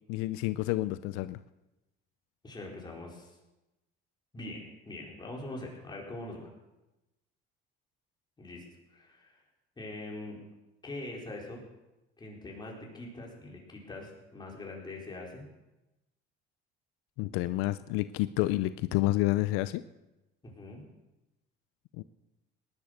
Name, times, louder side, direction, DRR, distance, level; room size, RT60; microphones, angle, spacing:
voice 1, 0.1-1.4 17.2-19.8 22.0-22.1, left 17 dB, 90° left, 14 dB, 0.6 m, -29 dB
voice 2, 2.4-3.3 4.3-6.5 8.4-8.6 8.9-9.4 9.8-10.4 10.8-11.6 12.2-15.5 20.4-20.8, left 2 dB, 20° left, -1 dB, 4.7 m, -43 dB
18.5 x 11.0 x 6.6 m, 0.99 s
cardioid pair, 115°, 21 cm